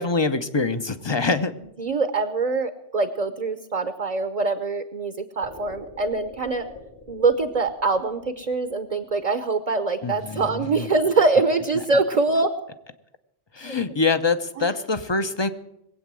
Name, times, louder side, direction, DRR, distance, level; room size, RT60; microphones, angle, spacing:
voice 1, 0.0-1.5 10.0-10.9 13.6-15.5, left 3 dB, 30° left, 11 dB, 0.8 m, -24 dB
voice 2, 1.8-6.6 7.1-12.5 13.6-13.8 14.6-14.7, right 3 dB, 40° right, 10 dB, 0.9 m, -24 dB
sound 1, 5.4-9.6, left 4 dB, 60° left, 3.5 m, -44 dB
21.0 x 8.4 x 7.5 m, 0.83 s
omnidirectional pair, 1.1 m